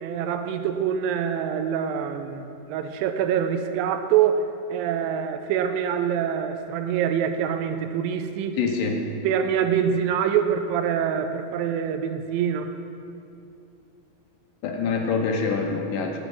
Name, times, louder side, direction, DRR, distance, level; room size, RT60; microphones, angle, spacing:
voice 1, 0.0-8.6 9.2-12.7, right 8 dB, 85° right, 8 dB, 2.2 m, -25 dB
voice 2, 8.6-9.0 14.6-16.2, left 4 dB, 75° left, 3 dB, 2.4 m, -25 dB
10.5 x 5.0 x 7.9 m, 2.5 s
omnidirectional pair, 4.1 m